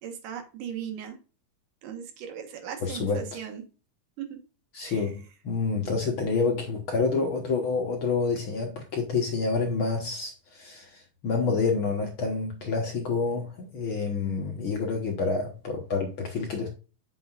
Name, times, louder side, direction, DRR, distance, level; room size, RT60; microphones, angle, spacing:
voice 1, 0.0-1.2 1.8-3.6 4.2-4.4 4.8-5.1, right 8 dB, 70° right, 2.7 m, -38 dB
voice 2, 2.8-3.3 4.7-16.7, left 4 dB, 75° left, 1.1 m, -28 dB
7.6 x 6.6 x 2.4 m
omnidirectional pair, 4.2 m